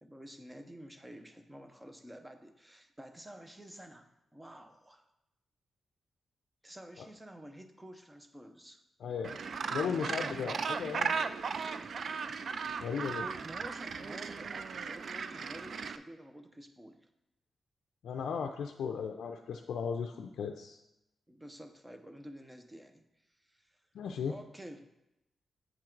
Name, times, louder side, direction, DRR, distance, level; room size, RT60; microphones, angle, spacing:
voice 1, 0.0-5.0 6.6-8.8 9.8-10.6 13.2-17.0 21.3-23.0 23.5-23.7 24.3-24.9, equal, 10° right, 7 dB, 0.7 m, -50 dB
voice 2, 9.0-9.4 9.7-11.3 12.8-13.3 18.0-20.8 23.9-24.3, left 6 dB, 90° left, 4 dB, 0.4 m, -36 dB
Gull seagull, 9.2-16.0, right 5 dB, 60° right, 0.3 m, -36 dB
7.8 x 3.6 x 4.5 m, 0.90 s
cardioid pair, 90°, 0 cm